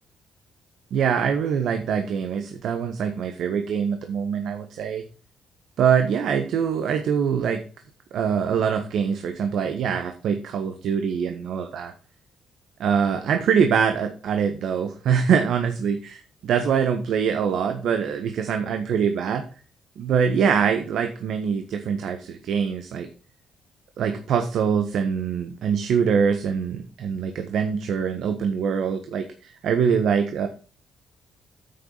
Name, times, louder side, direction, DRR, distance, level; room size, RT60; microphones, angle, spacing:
voice 1, 0.9-5.0 5.8-7.6 8.1-11.9 12.8-19.4 20.0-23.1 24.0-30.5, right 7 dB, 70° right, 6 dB, 1.5 m, -24 dB
9.6 x 9.2 x 4.1 m, 0.38 s
cardioid pair, 90°, 0 cm